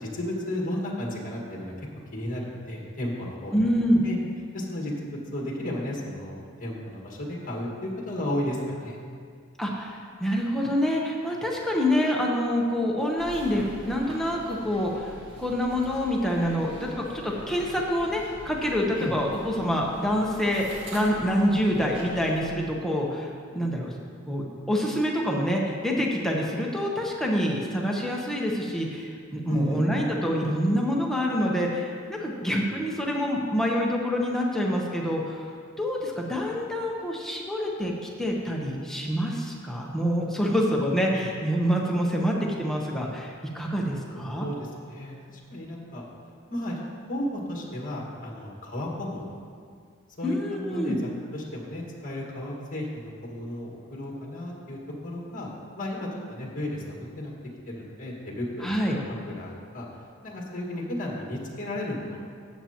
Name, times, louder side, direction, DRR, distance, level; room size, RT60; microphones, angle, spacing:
voice 1, 0.0-1.9 2.1-3.6 4.0-4.2 4.5-9.0 19.0-19.1 29.5-29.8 41.1-41.3 44.1-46.0 46.5-46.8 47.1-49.4 50.2-55.5 55.8-57.3 57.7-59.9 60.2-62.2, left 1 dB, 40° left, -2 dB, 1.8 m, -33 dB
voice 2, 3.5-4.0 9.6-23.9 24.3-35.5 35.8-37.9 38.2-44.5 50.2-51.0 58.6-59.0, equal, ahead, -2 dB, 0.9 m, -26 dB
sound 1, 13.2-22.4, equal, 65° right, 1.6 m, -43 dB
14.0 x 7.6 x 2.9 m, 2.1 s
head